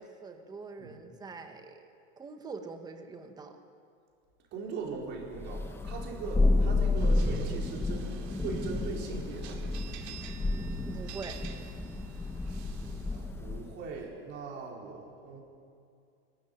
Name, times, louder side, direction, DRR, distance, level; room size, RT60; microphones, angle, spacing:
voice 1, 0.0-3.6 10.8-11.4, right 4 dB, 10° right, 6 dB, 1.4 m, -44 dB
voice 2, 4.5-9.9 13.0-15.4, right 4 dB, 35° right, -1 dB, 4.7 m, -40 dB
Thunder, 5.3-13.8, left 2 dB, 5° left, 1.0 m, -31 dB
sound 1, 7.0-13.3, right 9 dB, 75° right, 2.7 m, -50 dB
23.0 x 13.5 x 9.9 m, 2.4 s
supercardioid pair, 160°, 33 cm